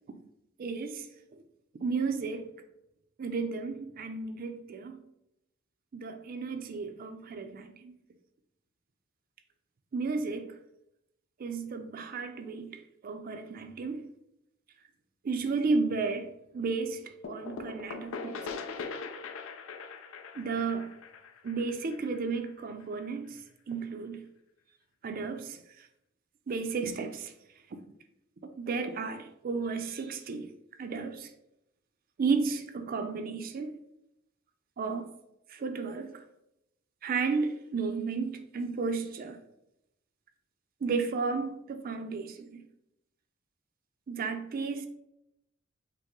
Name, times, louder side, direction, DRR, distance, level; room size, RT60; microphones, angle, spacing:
voice 1, 0.6-1.1 1.7-2.5 3.2-5.0 5.9-7.9 9.9-10.6 11.4-14.1 15.2-18.6 20.4-20.9 21.4-23.4 23.7-24.2 25.0-25.9 26.5-27.3 28.4-30.5 30.8-31.3 32.2-33.7 34.8-35.1 35.5-36.2 37.0-39.4 40.8-42.6 44.1-44.9, right 4 dB, 45° right, 0.4 m, -33 dB
sound 1, 17.2-22.8, left 4 dB, 80° left, 0.5 m, -41 dB
5.2 x 2.0 x 3.6 m
head